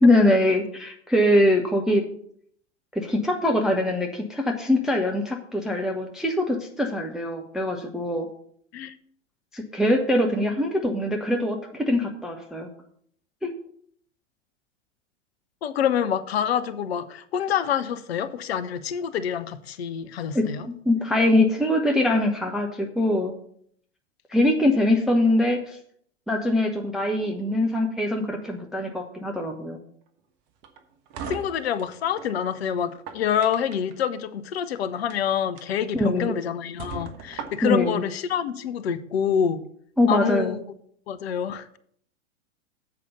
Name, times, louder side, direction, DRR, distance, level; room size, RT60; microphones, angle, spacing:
voice 1, 0.0-2.0 2.9-8.3 9.5-12.7 13.4-13.5 20.3-23.3 24.3-25.8 26.3-29.8 35.9-36.4 37.6-38.0 40.0-40.6, left 1 dB, ahead, 0.3 m, -23 dB
voice 2, 15.6-20.7 31.3-39.6 40.1-40.6 41.1-41.8, left 8 dB, 60° left, 0.7 m, -27 dB
sound 1, 30.6-32.3 32.9-33.9 34.9-35.2 35.6-35.7 36.2-36.3 36.8-37.9, right 6 dB, 40° right, 1.2 m, -38 dB
7.8 x 5.0 x 6.6 m
figure-of-eight pair, 95°, 36 cm